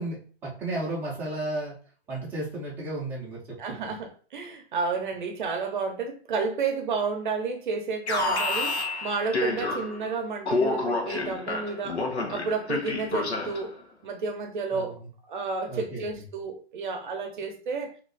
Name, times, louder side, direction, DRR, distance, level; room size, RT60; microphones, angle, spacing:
voice 1, 0.0-1.8 2.1-3.4 14.7-14.9 15.7-16.0, right 2 dB, 5° right, 0.7 m, -33 dB
voice 2, 3.6-13.7 14.0-15.0 15.3-17.9, right 4 dB, 50° right, 0.7 m, -31 dB
Alarm, 8.1-10.1 10.4-13.7, left 2 dB, 80° left, 1.1 m, -29 dB
2.9 x 2.4 x 3.9 m
hypercardioid pair, 150°, 32 cm